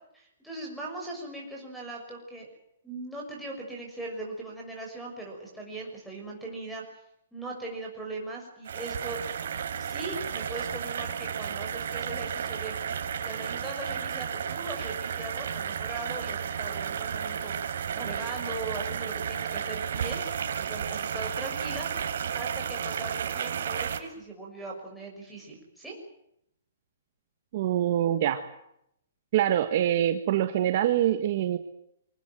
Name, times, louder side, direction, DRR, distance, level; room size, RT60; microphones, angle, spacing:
voice 1, 0.1-2.5 2.8-6.8 7.3-9.2 9.8-12.7 13.2-17.5 17.9-20.2 20.6-21.9 22.3-25.9, right 2 dB, ahead, -4 dB, 6.3 m, -39 dB
sound 1, 8.6-24.0, right 7 dB, 60° right, 3.4 m, -33 dB
voice 2, 27.5-28.4 29.3-31.6, right 11 dB, 40° right, 8 dB, 1.4 m, -24 dB
25.0 x 19.0 x 9.0 m, 0.77 s
hypercardioid pair, 170°, 0 cm